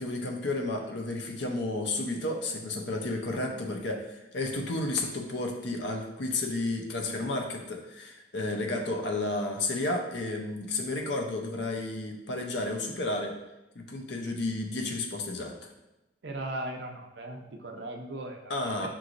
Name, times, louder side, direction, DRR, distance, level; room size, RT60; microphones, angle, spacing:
voice 1, 0.0-13.3 13.8-15.7 18.5-18.9, left 2 dB, 65° left, 2 dB, 0.6 m, -32 dB
voice 2, 16.2-18.9, right 1 dB, 65° right, 3 dB, 0.6 m, -38 dB
5.8 x 3.1 x 2.5 m, 0.95 s
head